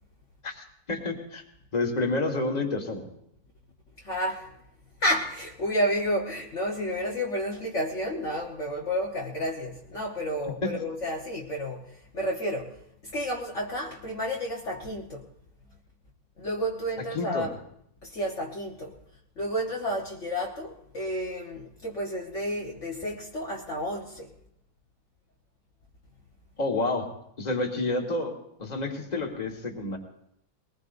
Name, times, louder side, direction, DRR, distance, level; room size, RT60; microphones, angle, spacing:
voice 1, 0.4-1.4 1.7-3.0 17.1-17.5 26.6-27.1 27.4-28.3 28.6-30.0, left 2 dB, 25° left, 1.7 m, -29 dB
voice 2, 4.0-4.6 5.0-15.3 16.4-17.5 18.0-19.0 19.4-24.3, equal, 50° left, 1.5 m, -31 dB
22.0 x 19.0 x 2.6 m
omnidirectional pair, 1.6 m